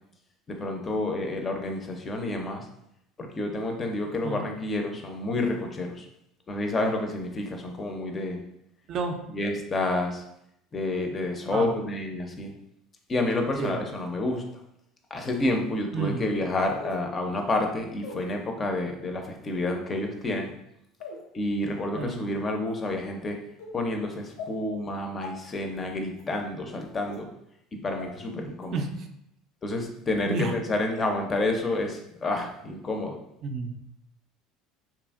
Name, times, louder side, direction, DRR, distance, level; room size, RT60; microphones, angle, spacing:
voice 1, 0.5-2.7 3.2-6.1 6.5-8.4 9.3-10.2 10.7-12.5 13.1-14.4 15.1-20.5 21.3-23.4 23.7-27.3 27.7-28.8 29.6-33.2, left 2 dB, 30° left, 3 dB, 0.4 m, -29 dB
voice 2, 8.9-9.2 11.5-11.7 13.6-13.8 15.9-16.3 21.9-22.2 28.7-29.1 30.3-30.5 33.4-33.7, right 4 dB, 50° right, 5 dB, 0.4 m, -30 dB
sound 1, 14.3-14.4 15.3-15.4 16.8-17.0 18.0-18.2 19.0-19.2 20.1-20.4 21.0-21.2 22.0-22.1 22.7-22.9 23.6-23.7 24.4-24.5 25.2-25.3 26.1-26.2 27.1-27.2 28.0-28.1 28.6-28.7, left 4 dB, 90° left, 0.7 m, -41 dB
2.8 x 2.5 x 2.4 m, 0.78 s
supercardioid pair, 105°, 0 cm